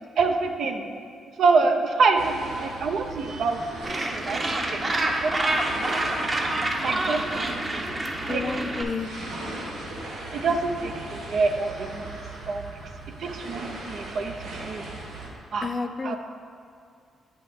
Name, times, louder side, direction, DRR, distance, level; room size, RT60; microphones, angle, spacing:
voice 1, 0.2-0.8 1.4-3.6 3.9-4.9 5.2-5.3 5.9-6.3 6.8-7.8 8.3-8.4 10.3-12.2 12.5-12.8 13.2-14.8 15.5-15.7 16.0-16.2, right 4 dB, 70° right, 4 dB, 0.6 m, -26 dB
sound 1, 2.2-15.3, right 2 dB, 85° right, 1.1 m, -38 dB
Gull seagull, 3.8-8.8, right 1 dB, 35° right, 0.9 m, -27 dB
voice 2, 8.3-9.1 15.6-16.2, left 4 dB, 40° left, 9 dB, 0.4 m, -30 dB
8.4 x 5.3 x 3.5 m, 2.3 s
supercardioid pair, 55°, 0 cm